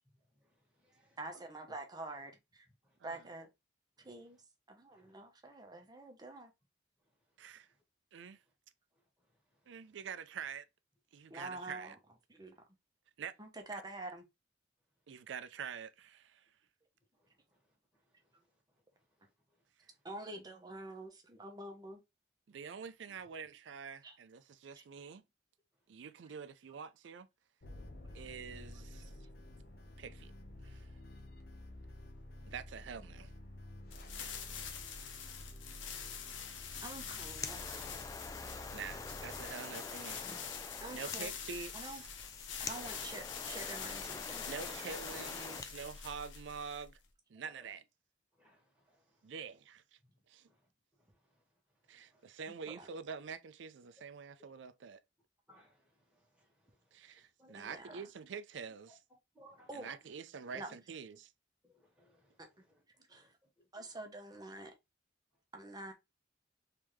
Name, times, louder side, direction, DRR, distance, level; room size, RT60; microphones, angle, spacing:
voice 1, 0.4-1.5 2.8-3.0 4.0-4.1 4.9-5.1 5.8-5.9 9.6-9.9 11.2-11.3 17.2-17.6 17.9-18.0 18.3-18.4 23.0-23.1 32.3-32.4 40.2-40.5 42.6-42.7 43.7-43.8 44.6-44.7 45.1-45.3 47.4-47.7 48.4-49.2 50.0-50.1 50.5-50.7 51.0-51.4 51.9-52.3 55.5-57.0 57.4-57.7 58.9-59.0 59.3-60.0 60.7-60.8 61.6-62.8 63.1-63.3 63.8-63.9, equal, 5° right, 1.5 m, -63 dB
voice 2, 1.2-2.7 3.0-3.5 4.0-4.4 4.7-6.5 11.3-12.0 12.3-12.7 13.4-14.2 20.0-22.0 24.0-24.2 24.7-24.8 36.3-36.4 36.8-37.9 39.5-39.6 40.8-41.3 41.7-42.0 42.6-44.5 52.8-52.9 57.5-58.1 59.7-59.9 60.5-60.7 63.1-63.3 63.7-64.7 65.5-65.9, right 2 dB, 20° right, 0.8 m, -47 dB
voice 3, 9.7-10.6 11.1-12.0 13.2-13.3 13.7-13.8 15.1-16.4 22.5-25.2 25.9-27.3 28.1-29.1 30.0-30.3 30.6-30.9 32.5-33.3 38.7-40.2 40.9-42.0 44.5-47.0 47.3-47.8 49.2-49.8 50.3-50.5 51.9-55.0 56.9-59.0 59.7-61.3, right 6 dB, 75° right, 0.4 m, -46 dB
sound 1, 27.6-39.5, left 1 dB, 55° left, 0.8 m, -51 dB
sound 2, 33.9-47.0, left 7 dB, 90° left, 0.8 m, -45 dB
sound 3, 37.1-45.7, left 4 dB, 20° left, 0.3 m, -46 dB
3.5 x 3.3 x 3.1 m
head